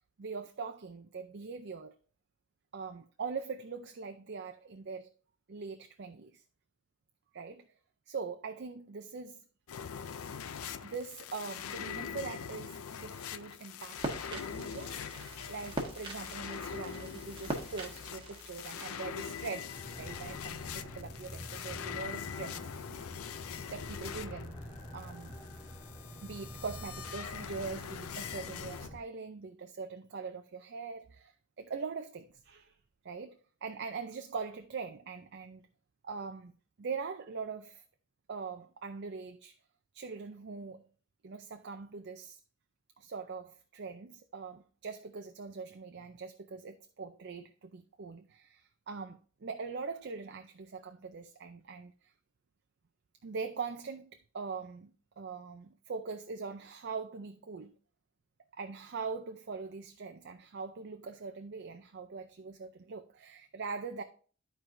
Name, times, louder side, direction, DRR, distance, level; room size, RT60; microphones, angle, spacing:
voice 1, 0.2-1.9 2.7-5.1 5.5-6.4 7.3-7.7 8.1-9.4 10.8-22.9 23.7-24.5 24.9-25.4 26.2-32.8 33.0-33.4 33.6-35.6 36.0-37.8 38.3-39.5 39.9-40.8 41.2-42.4 43.0-52.1 53.2-57.7 58.5-64.0, right 5 dB, 50° right, 0.5 m, -42 dB
sound 1, 9.7-28.9, left 7 dB, 80° left, 0.5 m, -43 dB
sound 2, 14.0-19.0, right 1 dB, 25° right, 1.3 m, -42 dB
sound 3, 19.7-29.0, left 1 dB, 30° left, 2.7 m, -47 dB
12.5 x 4.6 x 2.6 m
head